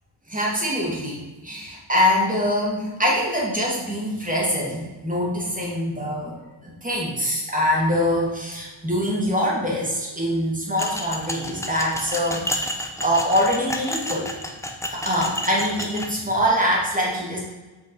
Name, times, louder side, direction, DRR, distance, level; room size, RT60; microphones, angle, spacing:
voice 1, 0.3-12.6 13.0-14.3 14.9-17.4, equal, 15° right, -4 dB, 2.7 m, -24 dB
sound 1, 10.8-16.1, left 1 dB, 5° left, 0.9 m, -30 dB
8.4 x 5.7 x 4.7 m, 1.2 s
wide cardioid pair, 105°, 48 cm